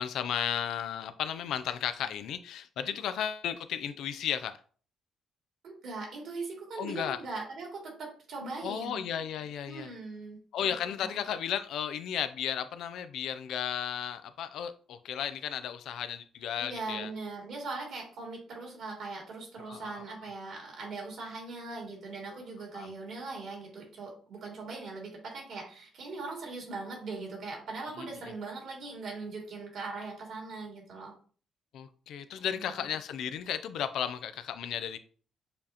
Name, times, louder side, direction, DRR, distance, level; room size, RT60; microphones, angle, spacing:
voice 1, 0.0-4.6 6.8-7.2 8.6-9.9 10.5-17.1 19.7-20.0 22.7-22.9 27.9-28.1 31.7-35.0, left 9 dB, 80° left, 0.4 m, -34 dB
voice 2, 5.6-9.0 9.7-10.4 10.6-10.7 11.0-11.2 16.6-31.1 32.3-32.9, right 3 dB, 70° right, 2.3 m, -40 dB
6.8 x 2.5 x 2.8 m
cardioid pair, 90°, 0 cm